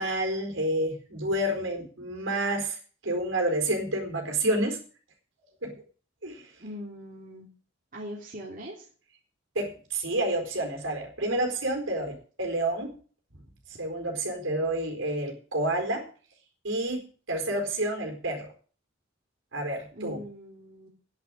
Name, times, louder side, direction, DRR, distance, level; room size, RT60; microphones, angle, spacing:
voice 1, 0.0-4.8 5.6-5.8 6.2-6.4 9.5-12.9 13.8-16.1 16.6-18.5 19.5-20.2, right 1 dB, 70° right, 3 dB, 4.4 m, -29 dB
voice 2, 6.6-7.5 7.9-8.9 19.9-20.9, equal, 45° right, -2 dB, 2.9 m, -41 dB
10.5 x 9.8 x 7.6 m, 0.40 s
head